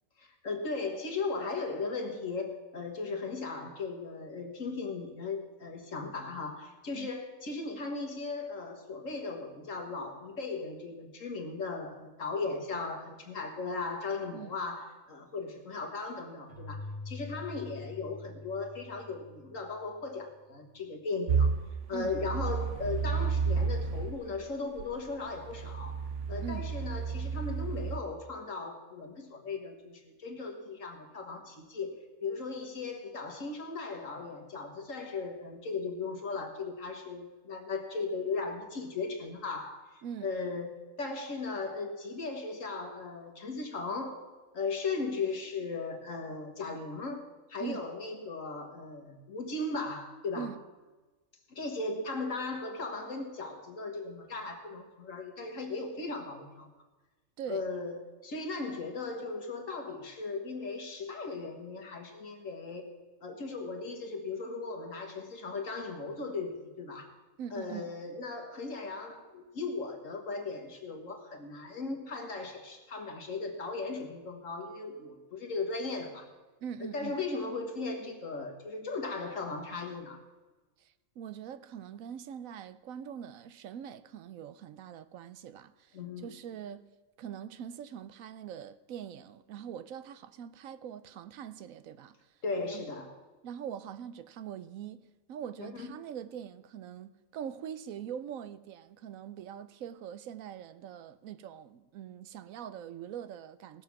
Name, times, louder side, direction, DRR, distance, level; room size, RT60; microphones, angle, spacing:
voice 1, 0.2-21.5 21.9-26.0 26.3-44.2 44.5-50.5 51.5-56.7 57.5-62.9 63.2-67.1 67.5-76.3 76.8-80.2 85.9-86.3 92.4-93.1 95.6-95.9, left 3 dB, 70° left, 1.9 m, -37 dB
Keyboard (musical), 16.5-20.0, left 2 dB, 15° right, 4.5 m, -45 dB
sound 1, 21.3-24.2 24.8-28.0, right 5 dB, 65° right, 1.1 m, -31 dB
voice 2, 67.4-67.9 76.6-77.2 80.8-86.8 87.2-92.2 92.6-92.8 93.4-95.0 95.3-103.8, right 9 dB, 85° right, 1.1 m, -43 dB
18.0 x 7.3 x 5.9 m
omnidirectional pair, 1.4 m